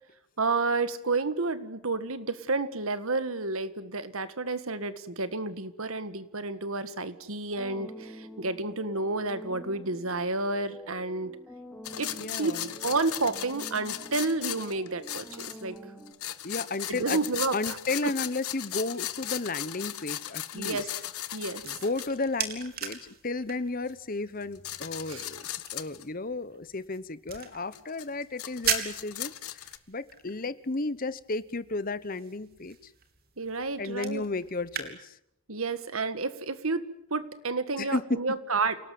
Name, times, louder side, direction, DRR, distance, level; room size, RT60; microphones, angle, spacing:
voice 1, 0.4-11.3 12.0-12.6 12.8-15.8 16.9-17.8 20.5-20.9 21.3-21.6 25.1-25.3 33.4-34.2 35.5-38.8, right 3 dB, 70° right, 12 dB, 1.7 m, -30 dB
sound 1, 7.6-16.1, equal, 5° left, 3.5 m, -47 dB
sound 2, 11.8-15.8 16.1-22.2 23.9-24.0 24.4-26.0 27.7-29.8, left 13 dB, 85° left, 1.3 m, -37 dB
voice 2, 12.2-12.7 16.4-17.2 17.5-20.9 21.6-32.9 33.8-35.2 37.8-38.2, left 3 dB, 40° left, 16 dB, 1.0 m, -33 dB
sound 3, 21.2-34.9, right 8 dB, 45° right, 3.1 m, -40 dB
28.5 x 18.5 x 9.4 m, 0.77 s
head